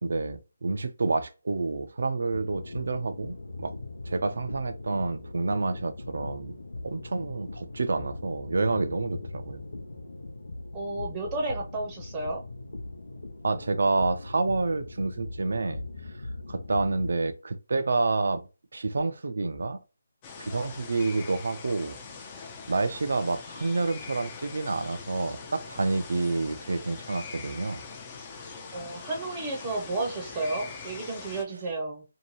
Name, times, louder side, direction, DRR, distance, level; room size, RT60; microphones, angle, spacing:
voice 1, 0.0-3.7 4.0-6.5 6.8-9.6 13.4-15.8 16.5-19.8 20.4-22.0 22.7-27.8, right 3 dB, 65° right, 0.5 m, -28 dB
sound 1, 2.3-17.1, left 2 dB, 85° left, 0.7 m, -40 dB
voice 2, 10.7-12.4 28.7-32.0, right 2 dB, 20° right, 0.7 m, -32 dB
sound 2, 20.2-31.4, left 5 dB, 25° left, 0.5 m, -42 dB
2.6 x 2.2 x 3.1 m
figure-of-eight pair, 155°, 0 cm